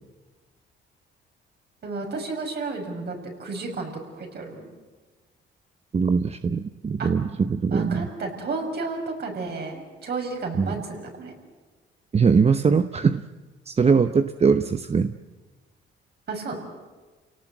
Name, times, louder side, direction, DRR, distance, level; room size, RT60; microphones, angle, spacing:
voice 1, 1.8-4.6 7.0-7.1 7.7-11.3 16.3-16.6, right 3 dB, 55° right, 2 dB, 6.2 m, -32 dB
voice 2, 5.9-8.1 10.5-10.7 12.1-13.2 13.7-15.1, right 5 dB, 30° right, 9 dB, 0.8 m, -21 dB
29.0 x 18.0 x 8.0 m, 1.3 s
cardioid pair, 90°, 20 cm